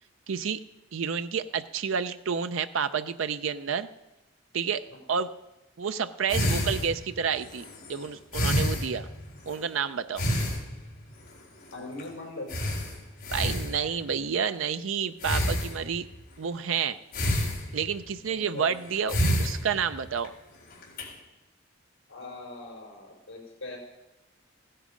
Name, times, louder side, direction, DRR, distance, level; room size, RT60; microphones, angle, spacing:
voice 1, 0.3-0.6 0.9-3.9 4.5-5.3 5.8-9.1 9.5-10.2 13.3-16.1 16.4-17.0 17.7-20.3, right 6 dB, 75° right, 11 dB, 0.5 m, -30 dB
sound 1, 6.3-9.6 10.2-11.1 11.6-11.7 12.0-12.1 12.5-14.1 15.2-16.2 17.1-18.1 18.8-20.3 20.7-21.0, equal, 50° left, 3.7 m, -29 dB
voice 2, 11.7-12.5 18.3-18.7 22.1-23.8, left 2 dB, 75° left, -1 dB, 4.7 m, -40 dB
15.5 x 10.0 x 5.1 m, 1.0 s
head